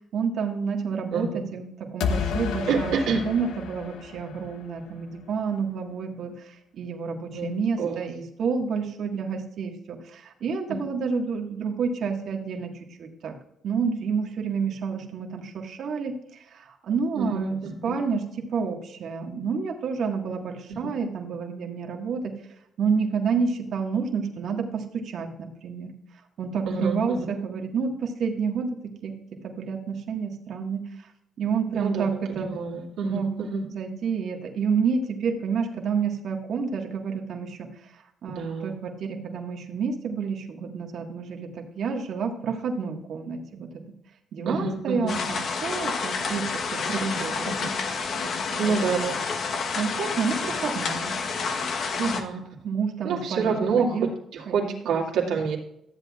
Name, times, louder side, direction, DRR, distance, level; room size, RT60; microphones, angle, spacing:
voice 1, 0.1-3.0 3.2-12.7 13.0-13.3 13.6-22.3 22.8-25.9 26.4-29.2 29.4-30.9 31.4-32.5 33.0-37.7 38.2-43.7 44.3-47.4 48.1-48.8 49.7-51.1 52.1-52.2 52.6-54.1 54.5-55.3, right 5 dB, 65° right, 1 dB, 1.7 m, -29 dB
voice 2, 1.1-1.4 2.7-3.2 7.3-8.0 10.7-10.8 17.2-18.0 20.7-20.9 26.7-27.2 31.7-32.1 32.4-33.6 38.4-38.7 44.5-45.2 47.0-47.1 47.5-47.7 48.6-49.1 52.0-52.4 53.0-55.6, right 5 dB, 85° right, -1 dB, 2.3 m, -28 dB
sound 1, 2.0-4.9, left 6 dB, 90° left, 0.9 m, -31 dB
sound 2, 45.1-52.2, left 4 dB, 60° left, 1.1 m, -29 dB
13.0 x 7.8 x 2.4 m, 0.77 s
cardioid pair, 90°, 0 cm